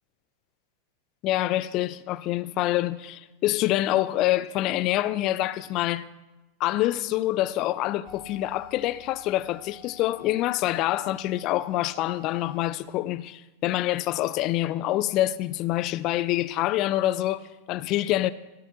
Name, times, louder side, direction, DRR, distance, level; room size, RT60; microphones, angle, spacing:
voice 1, 1.2-6.0 6.6-18.3, left 15 dB, 40° left, 0.5 m, -26 dB
sound 1, 8.1-12.6, left 6 dB, 20° left, 1.7 m, -50 dB
16.0 x 8.2 x 6.8 m
figure-of-eight pair, 90°, 0 cm